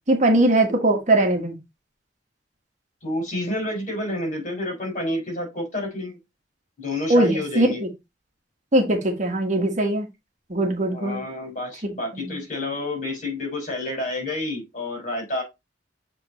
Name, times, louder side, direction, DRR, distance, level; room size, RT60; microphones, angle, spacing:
voice 1, 0.1-1.6 7.1-7.9 8.7-10.1 10.5-11.2 11.8-12.4, right 1 dB, 40° right, 3 dB, 1.5 m, -21 dB
voice 2, 3.0-6.2 6.8-7.8 10.9-15.4, left 1 dB, 45° left, 0 dB, 4.7 m, -29 dB
7.6 x 3.8 x 4.0 m, 0.22 s
head